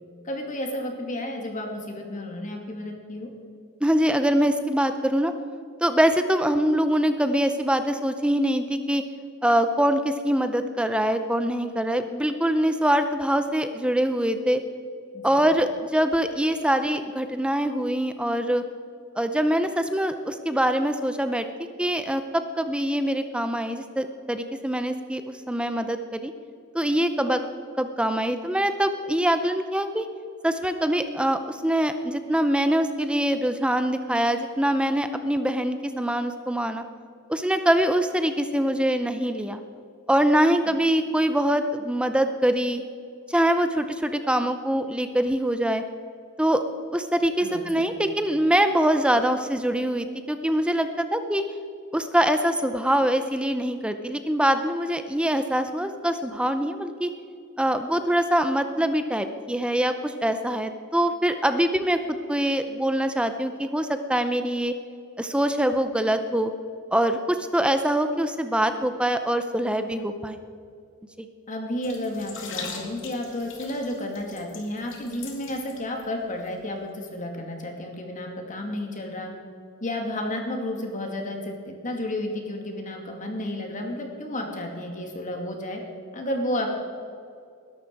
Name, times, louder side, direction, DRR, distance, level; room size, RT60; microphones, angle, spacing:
voice 1, 0.2-3.3 15.1-15.4 47.4-47.6 48.0-48.1 71.5-79.3 79.8-85.8 86.1-86.7, left 1 dB, 35° left, 2 dB, 2.5 m, -32 dB
voice 2, 3.8-5.3 5.8-9.0 9.4-14.6 15.2-18.6 19.2-21.5 21.8-26.3 26.7-27.4 27.8-30.1 30.4-36.8 37.3-39.6 40.1-42.8 43.3-45.8 46.4-46.6 46.9-51.4 51.9-57.1 57.6-64.7 65.2-66.5 66.9-70.4 71.2-71.3, right 1 dB, 5° right, 8 dB, 0.6 m, -24 dB
sound 1, 71.8-76.0 76.3-76.5, left 5 dB, 60° left, 2.6 m, -40 dB
20.5 x 11.5 x 4.7 m, 2.3 s
head